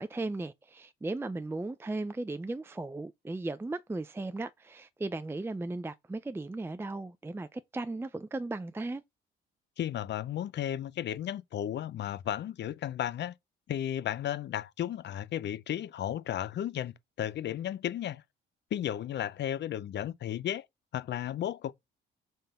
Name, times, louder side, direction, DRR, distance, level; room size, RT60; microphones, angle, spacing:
voice 1, 0.0-9.0, right 2 dB, 10° right, 0.5 m, -36 dB
voice 2, 9.8-13.3 13.7-18.2 18.7-20.7 20.9-21.7, left 11 dB, 60° left, 0.6 m, -34 dB
5.3 x 3.8 x 5.6 m
cardioid pair, 90°, 20 cm